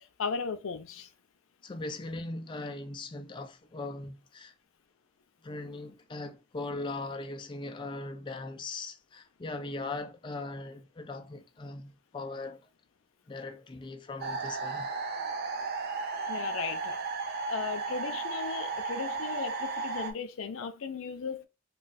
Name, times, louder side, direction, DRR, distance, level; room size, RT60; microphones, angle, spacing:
voice 1, 0.2-1.1 16.3-17.0 17.5-21.5, left 5 dB, 85° left, 0.5 m, -36 dB
voice 2, 1.6-4.5 5.4-12.6 13.3-14.9, left 2 dB, 25° left, 0.3 m, -39 dB
sound 1, 14.2-20.1, right 4 dB, 50° right, 0.5 m, -34 dB
2.4 x 2.3 x 3.9 m
head